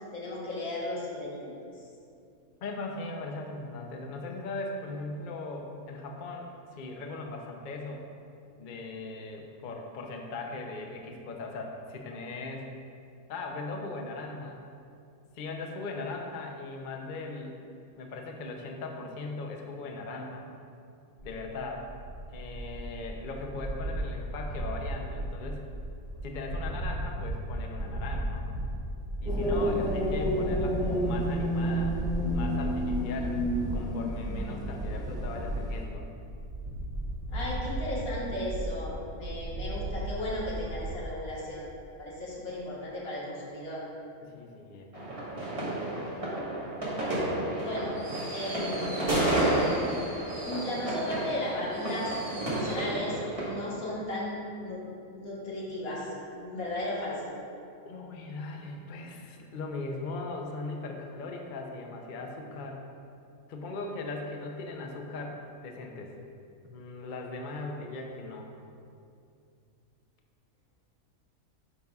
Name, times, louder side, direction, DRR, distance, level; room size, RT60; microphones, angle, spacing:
voice 1, 0.1-1.7 37.3-43.8 47.6-48.0 48.3-49.1 50.4-54.8 55.2-57.3, left 1 dB, 85° left, -6 dB, 1.9 m, -35 dB
voice 2, 2.6-8.0 8.6-12.7 13.3-14.6 15.3-17.6 18.0-20.5 21.2-21.9 22.3-25.6 26.2-28.5 29.2-32.0 32.3-33.4 33.7-36.1 44.2-45.4 57.9-62.8 63.5-66.2 66.6-68.6, left 3 dB, 55° left, 1 dB, 0.6 m, -39 dB
sound 1, 21.2-41.0, right 1 dB, 80° right, 1.5 m, -35 dB
sound 2, 29.2-35.8, equal, 5° right, 0.4 m, -31 dB
sound 3, 44.9-53.5, right 1 dB, 25° right, 1.3 m, -31 dB
10.0 x 5.3 x 2.3 m, 2.5 s
omnidirectional pair, 1.5 m